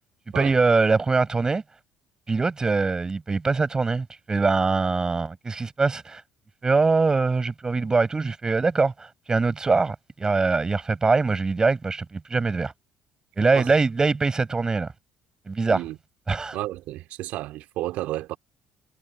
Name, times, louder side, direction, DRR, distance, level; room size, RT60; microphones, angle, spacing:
voice 1, 0.3-1.6 2.3-6.2 6.6-8.9 9.3-12.7 13.4-14.9 15.5-15.8 16.3-16.6, right 4 dB, 25° right, 6.6 m, -23 dB
voice 2, 16.5-18.4, right 16 dB, 60° right, 2.6 m, -32 dB
figure-of-eight pair, 55°, 3 cm